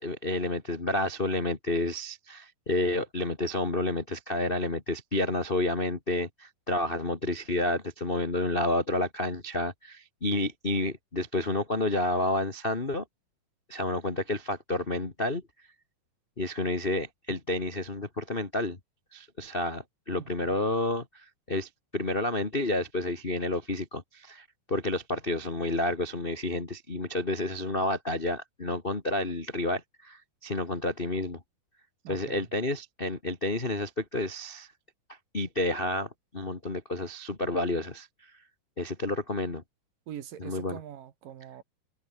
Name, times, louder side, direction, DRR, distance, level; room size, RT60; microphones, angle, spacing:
voice 1, 0.0-13.0 13.7-15.4 16.4-18.8 19.1-31.4 32.1-34.7 35.3-38.1 38.8-39.6 40.4-40.8, left 1 dB, 30° left, 0.9 m, -30 dB
voice 2, 20.2-20.6 32.0-32.5 40.1-41.6, right 10 dB, 65° right, 3.2 m, -43 dB
omnidirectional pair, 4.4 m